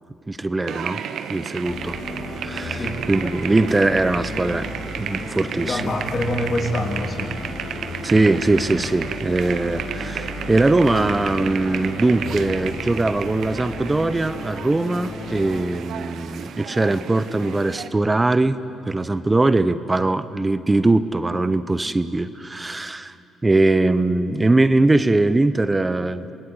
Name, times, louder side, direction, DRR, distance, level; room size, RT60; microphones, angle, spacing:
voice 1, 0.3-1.0 1.3-2.0 2.4-5.9 8.0-18.6 18.8-23.1 23.4-26.2, right 2 dB, 20° right, 13 dB, 0.9 m, -21 dB
sound 1, 0.7-17.9, right 8 dB, 70° right, 1.2 m, -33 dB
sound 2, 1.6-15.7, left 3 dB, 65° left, 4.6 m, -34 dB
voice 2, 5.6-7.3, left 1 dB, 40° left, 2 dB, 3.3 m, -25 dB
28.0 x 19.5 x 8.2 m, 2.9 s
cardioid pair, 90°, 0 cm